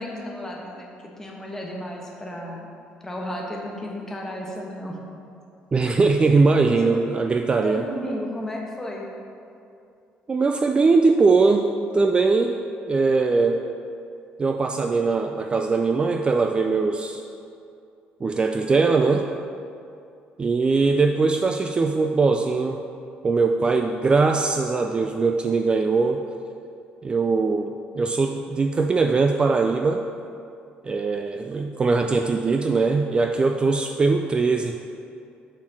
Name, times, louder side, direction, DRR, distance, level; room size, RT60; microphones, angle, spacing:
voice 1, 0.0-2.7 3.0-5.0 5.8-6.0 6.7-6.9 7.6-9.1, left 1 dB, 15° left, -1 dB, 1.2 m, -33 dB
voice 2, 5.7-7.8 10.3-12.6 12.9-13.6 14.4-17.2 18.2-19.3 20.4-22.8 23.2-26.2 27.0-30.0 30.8-34.8, right 4 dB, 25° right, 5 dB, 0.3 m, -21 dB
5.7 x 4.4 x 6.0 m, 2.5 s
cardioid pair, 100°, 4 cm